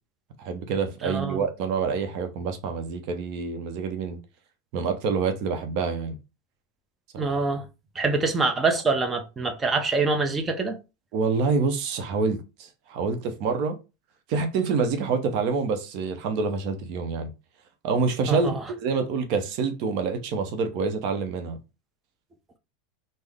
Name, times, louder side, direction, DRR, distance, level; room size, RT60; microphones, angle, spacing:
voice 1, 0.4-4.2 4.7-6.2 7.1-7.4 11.1-13.8 14.3-17.3 17.8-18.5 18.8-21.6, right 5 dB, 55° right, 0.7 m, -27 dB
voice 2, 1.0-1.4 7.2-7.7 7.9-10.8 18.3-18.6, right 3 dB, 20° right, 0.7 m, -25 dB
3.5 x 2.0 x 3.4 m
hypercardioid pair, 110°, 0 cm